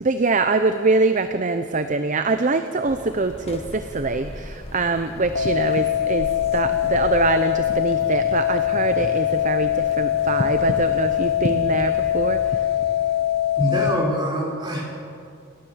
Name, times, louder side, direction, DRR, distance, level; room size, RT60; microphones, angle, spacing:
voice 1, 0.0-12.4, right 3 dB, 35° right, 9 dB, 0.7 m, -23 dB
sound 1, 2.9-12.5, left 1 dB, 30° left, 1.4 m, -39 dB
sound 2, 5.4-13.9, left 11 dB, 50° left, 1.3 m, -22 dB
voice 2, 13.6-14.8, equal, 20° right, -3 dB, 5.3 m, -24 dB
29.5 x 13.0 x 7.4 m, 2.4 s
head